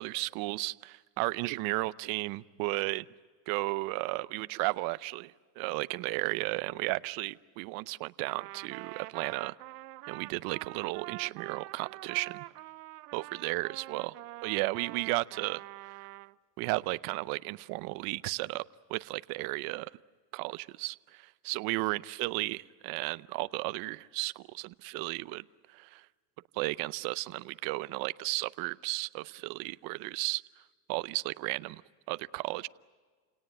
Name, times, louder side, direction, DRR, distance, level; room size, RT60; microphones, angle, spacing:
voice 1, 0.0-3.1 3.5-9.5 10.1-12.4 13.1-14.2 14.4-16.0 16.6-18.6 18.9-19.9 20.3-26.1 26.5-30.4 30.9-31.8 32.1-32.7, right 22 dB, 50° right, 17 dB, 0.7 m, -34 dB
Trumpet, 8.2-16.4, right 18 dB, 90° right, 0.7 m, -45 dB
29.5 x 18.0 x 9.7 m, 1.5 s
supercardioid pair, 130°, 45 cm